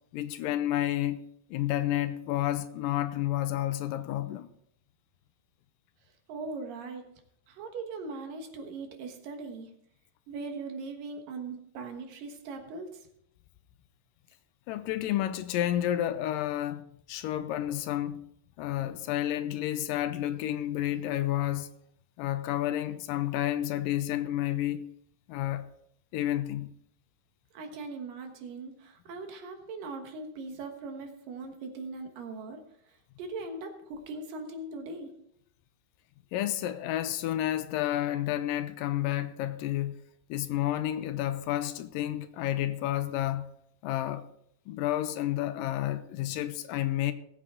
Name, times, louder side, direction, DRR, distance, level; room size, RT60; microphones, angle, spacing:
voice 1, 0.1-1.2 1.5-4.5 14.7-18.2 18.6-21.7 22.2-24.8 25.3-25.7 26.1-26.7 36.3-40.0 40.3-43.5 43.8-44.3 44.7-47.1, left 13 dB, 80° left, 2.2 m, -30 dB
voice 2, 6.3-7.1 7.5-9.7 10.3-13.1 27.5-35.1, right 3 dB, 75° right, 3.0 m, -40 dB
19.0 x 8.1 x 3.7 m
omnidirectional pair, 4.1 m